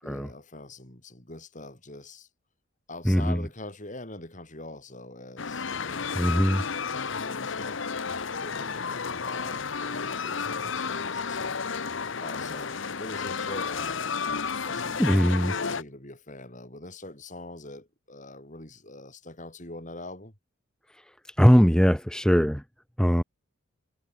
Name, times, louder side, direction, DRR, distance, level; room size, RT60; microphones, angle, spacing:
voice 1, 0.0-2.3 2.9-6.5 6.9-7.8 8.3-14.2 14.6-20.4, left 2 dB, 35° left, 6.4 m, -43 dB
voice 2, 3.0-3.4 6.1-6.6 15.0-15.5 21.4-22.6 23.0-23.2, equal, 5° left, 1.7 m, -20 dB
sound 1, 5.4-15.8, left 5 dB, 65° left, 1.0 m, -32 dB
head